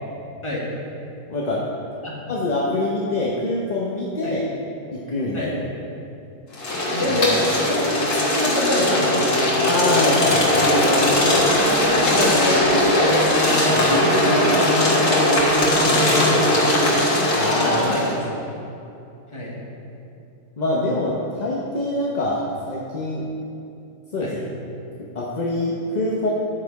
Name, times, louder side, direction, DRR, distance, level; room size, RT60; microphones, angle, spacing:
voice 1, 1.3-1.6 2.3-4.4 4.9-5.5 9.6-10.6 13.7-13.9 17.3-17.8 20.6-23.3 24.1-24.4 25.1-26.3, left 2 dB, 35° left, -5 dB, 0.8 m, -24 dB
sound 1, 6.5-18.1, left 1 dB, 85° left, 2.2 m, -19 dB
voice 2, 6.9-7.8 8.3-9.2 11.3-13.2 13.9-16.6 17.6-18.2 19.3-19.6 24.2-24.3, equal, 20° left, -5 dB, 1.7 m, -26 dB
9.8 x 6.8 x 4.7 m, 2.7 s
omnidirectional pair, 1.6 m